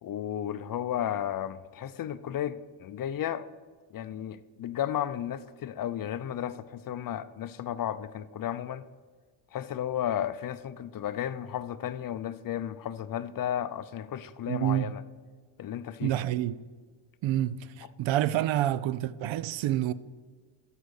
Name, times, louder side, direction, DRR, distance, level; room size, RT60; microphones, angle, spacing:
voice 1, 0.0-3.5 3.9-8.8 9.5-15.0 15.6-16.2, left 10 dB, 45° left, 0.5 m, -33 dB
voice 2, 14.5-14.9 16.0-16.6 17.2-19.9, right 13 dB, 70° right, 0.6 m, -28 dB
13.0 x 5.0 x 6.4 m
cardioid pair, 95°, 49 cm